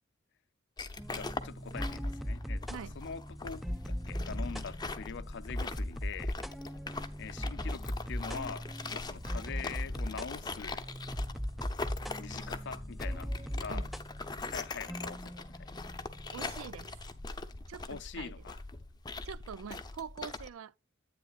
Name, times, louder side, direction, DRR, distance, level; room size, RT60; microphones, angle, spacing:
sound 1, 0.8-20.5, left 3 dB, 20° left, 0.7 m, -42 dB
sound 2, 1.0-17.3, equal, ahead, 0.3 m, -39 dB
voice 1, 1.1-2.6 3.0-6.4 7.2-10.8 12.2-13.9 14.4-15.8 17.9-18.6, left 6 dB, 60° left, 0.5 m, -44 dB
voice 2, 16.3-16.9 17.7-18.3 19.2-20.7, right 7 dB, 85° right, 0.4 m, -44 dB
10.0 x 8.9 x 2.4 m
head